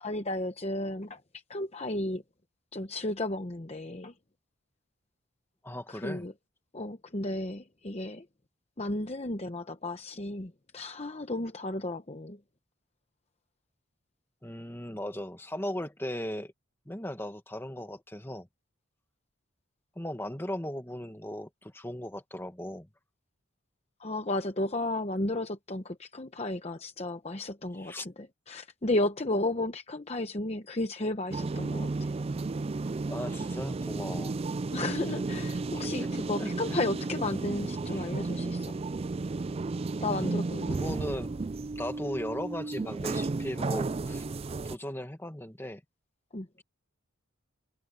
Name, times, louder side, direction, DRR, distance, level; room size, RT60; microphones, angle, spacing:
voice 1, 0.0-1.2 1.5-2.2 2.7-4.1 5.9-6.3 6.7-8.2 8.8-12.4 24.0-32.1 34.7-38.7 40.0-40.8 46.3-46.5, left 2 dB, 30° left, 0.9 m, -33 dB
voice 2, 5.6-6.3 14.4-16.5 16.9-18.5 20.0-22.9 27.8-28.1 33.1-34.4 36.0-36.1 36.4-36.8 40.1-40.3 40.7-41.4 41.8-44.2 44.7-45.8, left 1 dB, 10° left, 1.9 m, -37 dB
sound 1, 31.3-44.8, right 3 dB, 30° right, 0.3 m, -33 dB
head